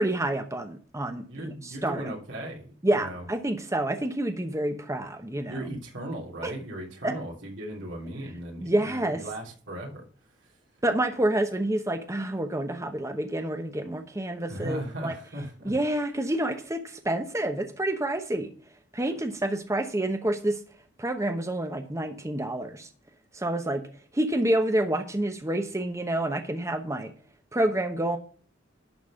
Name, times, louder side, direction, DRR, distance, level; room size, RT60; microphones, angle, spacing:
voice 1, 0.0-2.1 2.8-5.6 6.4-6.5 7.0-7.1 8.6-9.2 10.8-15.1 15.6-18.5 18.9-20.6 21.0-22.9 23.3-23.8 24.1-27.1 27.5-28.2, right 1 dB, 15° right, 5 dB, 0.9 m, -28 dB
voice 2, 1.3-3.3 5.4-10.0 14.5-15.7, right 1 dB, 80° right, -2 dB, 3.0 m, -37 dB
11.5 x 4.1 x 7.1 m, 0.44 s
head